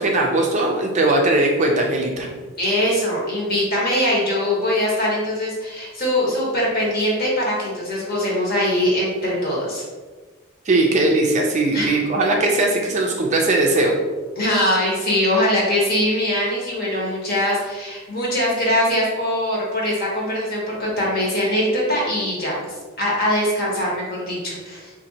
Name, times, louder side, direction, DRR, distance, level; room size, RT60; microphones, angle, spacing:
voice 1, 0.0-2.3 10.7-13.9, right 2 dB, 35° right, 1 dB, 0.4 m, -19 dB
voice 2, 2.6-9.8 11.7-12.1 14.4-24.9, left 1 dB, 45° left, -4 dB, 1.1 m, -22 dB
3.9 x 2.5 x 2.7 m, 1.3 s
head